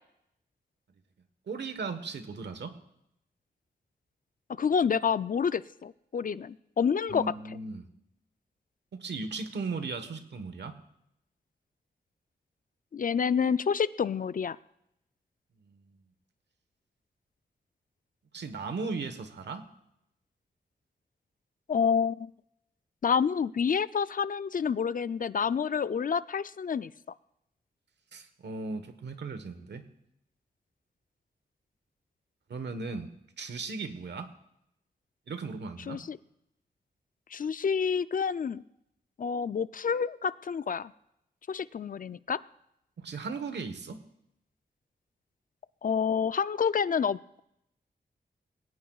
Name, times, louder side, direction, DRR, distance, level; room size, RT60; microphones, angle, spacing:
voice 1, 1.5-2.7 7.1-7.9 9.0-10.7 18.3-19.6 28.1-29.8 32.5-33.1 33.4-34.3 35.3-36.0 43.0-44.0, right 4 dB, 80° right, 9 dB, 1.2 m, -37 dB
voice 2, 4.6-7.2 12.9-14.6 21.7-22.3 23.0-26.9 35.9-36.2 37.3-38.6 39.2-40.9 41.5-42.4 45.8-47.4, left 6 dB, 50° left, 15 dB, 0.4 m, -28 dB
20.5 x 17.5 x 2.4 m, 0.80 s
cardioid pair, 65°, 18 cm